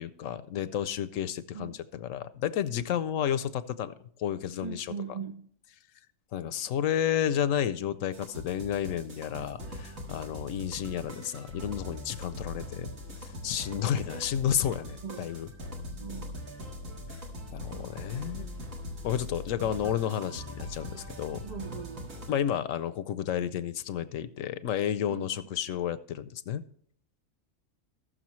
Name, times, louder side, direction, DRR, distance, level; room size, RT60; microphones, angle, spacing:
voice 1, 0.0-5.2 6.3-12.9 13.2-15.5 17.5-18.5 19.0-21.5 22.3-26.6, left 10 dB, 75° left, 1.0 m, -31 dB
voice 2, 4.6-5.5 15.0-15.3 16.0-16.3 21.4-22.1 25.1-25.2, right 6 dB, 60° right, 0.4 m, -39 dB
sound 1, 8.1-22.3, left 1 dB, 75° right, 2.1 m, -41 dB
19.0 x 6.4 x 3.1 m
omnidirectional pair, 1.4 m